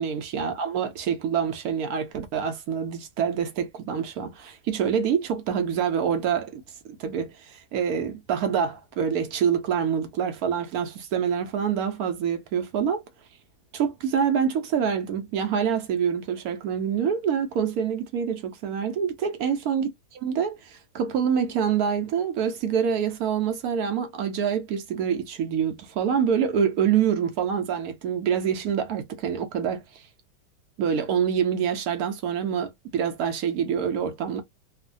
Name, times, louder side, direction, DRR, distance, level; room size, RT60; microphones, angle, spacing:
voice 1, 0.0-6.6 7.0-13.0 13.7-30.1 30.8-34.4, right 7 dB, 75° right, 0.8 m, -26 dB
3.1 x 2.1 x 2.5 m
omnidirectional pair, 2.1 m